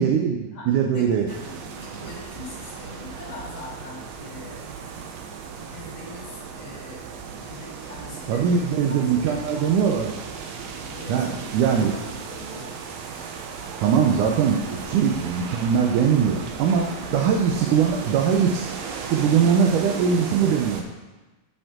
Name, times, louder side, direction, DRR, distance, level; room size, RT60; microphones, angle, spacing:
voice 1, 0.0-1.3 8.3-10.1 11.1-11.9 13.8-14.6 14.9-18.6 19.1-20.9, right 7 dB, 90° right, 2 dB, 2.3 m, -21 dB
voice 2, 0.9-4.6 5.6-7.1 7.3-9.7 10.8-11.5 11.8-12.8 14.6-14.8 17.0-17.3 17.6-17.8, left 2 dB, 70° left, -5 dB, 4.3 m, -42 dB
sound 1, 1.3-20.8, right 5 dB, 70° right, 1.8 m, -36 dB
13.5 x 5.3 x 3.7 m, 1.2 s
omnidirectional pair, 3.5 m